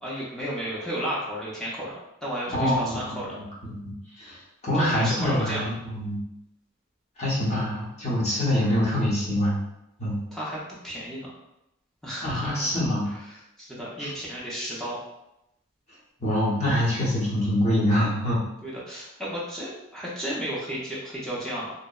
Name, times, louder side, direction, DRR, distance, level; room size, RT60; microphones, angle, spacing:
voice 1, 0.0-1.9 2.2-3.4 4.7-5.7 10.3-11.3 12.0-15.0 18.6-21.7, equal, ahead, -7 dB, 0.4 m, -33 dB
voice 2, 2.5-3.3 3.7-3.8 4.2-4.4 4.6-6.2 7.2-9.6 10.0-10.2 12.2-13.1 14.0-14.1 16.2-18.4, left 1 dB, 30° left, -7 dB, 0.7 m, -25 dB
2.7 x 2.1 x 2.2 m, 0.86 s
head